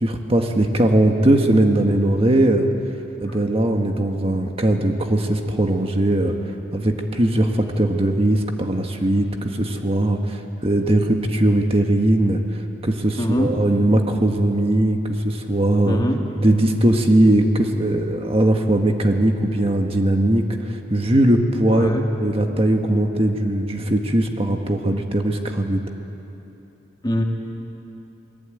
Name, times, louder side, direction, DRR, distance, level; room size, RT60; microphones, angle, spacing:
voice 1, 0.0-2.7 3.2-6.4 6.7-16.0 16.4-25.8, right 1 dB, 30° right, 3 dB, 1.5 m, -19 dB
voice 2, 13.2-13.5 15.9-16.2 21.7-22.0 27.0-27.2, equal, 25° left, 1 dB, 2.3 m, -22 dB
28.0 x 20.5 x 9.1 m, 2.9 s
head